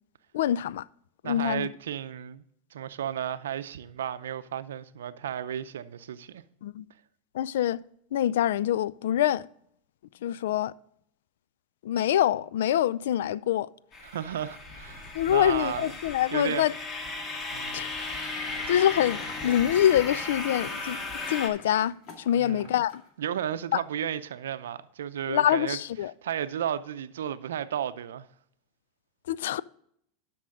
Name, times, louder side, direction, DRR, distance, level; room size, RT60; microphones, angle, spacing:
voice 1, 0.3-0.8 1.2-1.7 6.6-6.8 7.3-7.8 8.1-9.5 10.2-10.7 11.8-13.7 15.1-16.7 17.7-18.1 18.7-21.0 21.3-23.0 23.7-23.8 25.3-26.1 29.3-29.6, left 11 dB, 80° left, 0.3 m, -25 dB
voice 2, 1.2-2.4 2.7-6.4 14.0-15.9 16.3-16.7 17.5-18.0 22.3-22.7 23.2-25.8 26.2-28.3, right 9 dB, 85° right, 0.5 m, -33 dB
sound 1, 13.9-21.5, left 3 dB, 30° left, 1.8 m, -36 dB
sound 2, 18.5-23.1 23.5-23.6, left 5 dB, 50° left, 2.1 m, -50 dB
11.5 x 6.1 x 3.7 m
hypercardioid pair, 100°, 0 cm